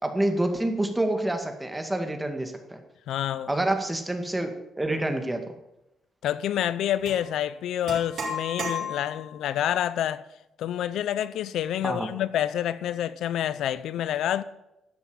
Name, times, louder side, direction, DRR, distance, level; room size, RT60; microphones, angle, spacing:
voice 1, 0.0-2.8 3.5-5.5 11.8-12.1, right 1 dB, 10° right, 2.2 m, -27 dB
voice 2, 3.1-3.5 6.2-10.3 10.6-14.4, left 11 dB, 80° left, 0.7 m, -28 dB
sound 1, 7.0-7.2 7.9-9.3, left 2 dB, 60° right, 5.1 m, -33 dB
12.5 x 8.2 x 8.9 m
cardioid pair, 90°, 0 cm